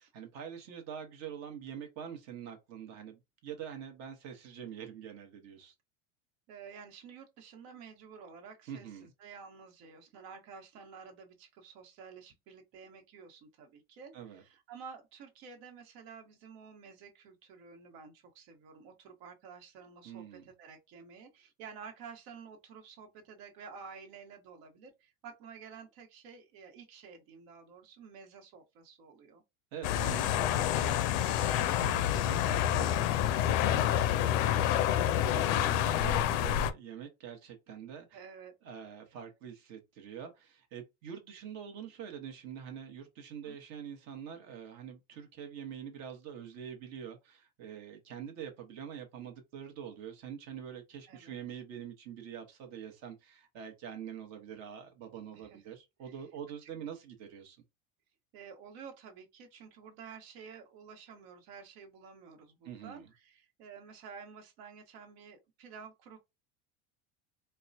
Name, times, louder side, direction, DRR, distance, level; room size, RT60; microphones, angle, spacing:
voice 1, 0.0-5.7 8.7-9.1 14.1-14.4 20.0-20.4 29.7-31.1 31.5-38.2 38.6-57.6 62.6-63.1, right 8 dB, 45° right, 1.2 m, -45 dB
voice 2, 6.5-29.4 38.1-38.5 43.4-43.6 51.1-51.3 55.3-55.6 56.0-56.2 56.6-56.7 58.3-66.2, right 6 dB, 60° right, 1.4 m, -51 dB
sound 1, 29.8-36.7, left 11 dB, 70° left, 0.5 m, -28 dB
4.5 x 2.2 x 2.7 m
cardioid pair, 160°, 37 cm